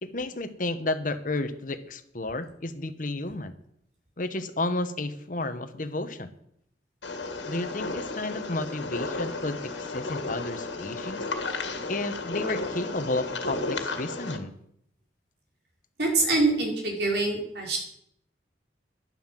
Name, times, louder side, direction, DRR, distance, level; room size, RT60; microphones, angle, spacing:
voice 1, 0.0-3.5 4.2-6.3 7.5-11.3 11.9-14.5, left 2 dB, 50° left, 10 dB, 1.2 m, -32 dB
sound 1, 7.0-14.4, left 3 dB, 90° left, 2.0 m, -33 dB
voice 2, 16.0-17.8, right 3 dB, 65° right, 0 dB, 4.8 m, -25 dB
11.5 x 11.0 x 7.6 m, 0.72 s
head